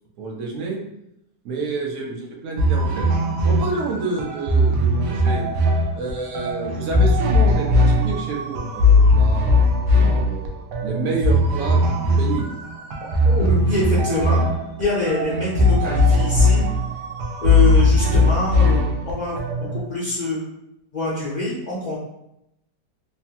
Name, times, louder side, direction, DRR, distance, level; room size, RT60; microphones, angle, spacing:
voice 1, 0.2-0.8 1.4-3.1 3.4-5.4 6.0-12.5, right 3 dB, 60° right, 0 dB, 0.8 m, -29 dB
sound 1, 2.6-19.8, left 1 dB, 85° right, 1.2 m, -19 dB
voice 2, 13.0-14.4 14.8-16.7 17.4-19.4 19.7-20.4 20.9-22.0, left 2 dB, 80° left, -7 dB, 0.4 m, -25 dB
3.2 x 2.2 x 2.7 m, 0.80 s
omnidirectional pair, 1.8 m